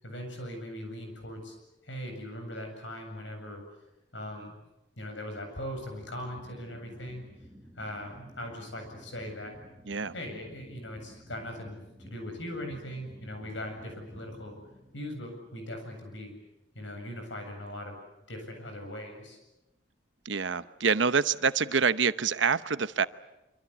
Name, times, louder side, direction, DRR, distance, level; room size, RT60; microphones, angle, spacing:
voice 1, 0.0-1.6 1.8-3.6 4.1-4.6 5.0-7.2 7.8-9.5 10.1-14.5 14.9-16.3 16.7-18.0 18.3-19.4, left 1 dB, 75° left, 5 dB, 7.9 m, -40 dB
sound 1, 5.3-16.2, equal, ahead, 2.5 m, -53 dB
voice 2, 20.2-23.1, right 5 dB, 75° right, 13 dB, 0.9 m, -26 dB
25.5 x 25.5 x 8.4 m, 0.98 s
head